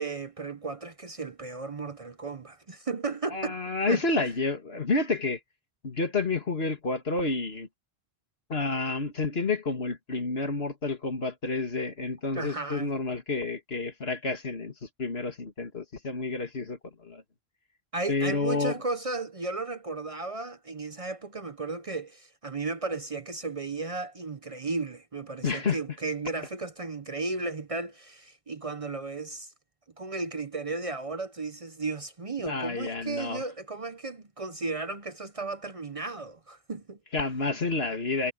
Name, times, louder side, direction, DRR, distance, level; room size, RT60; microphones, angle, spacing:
voice 1, 0.0-3.6 3.9-4.0 12.3-12.9 17.9-29.5 30.0-37.0, right 3 dB, 35° right, 0.8 m, -34 dB
voice 2, 3.3-5.4 5.8-7.7 8.5-14.7 15.0-17.2 18.1-18.8 25.4-25.8 32.5-33.4 37.1-38.3, left 3 dB, 75° left, 2.6 m, -29 dB
omnidirectional pair, 1.0 m